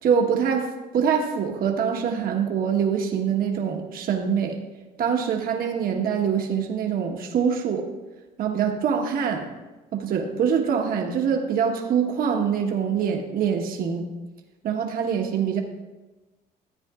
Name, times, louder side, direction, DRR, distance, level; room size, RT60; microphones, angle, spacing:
voice 1, 0.0-4.5 5.0-7.9 8.4-9.5 9.9-14.0 14.6-15.6, right 7 dB, 60° right, 2 dB, 1.3 m, -24 dB
14.0 x 9.2 x 2.5 m, 1.2 s
cardioid pair, 110°, 17 cm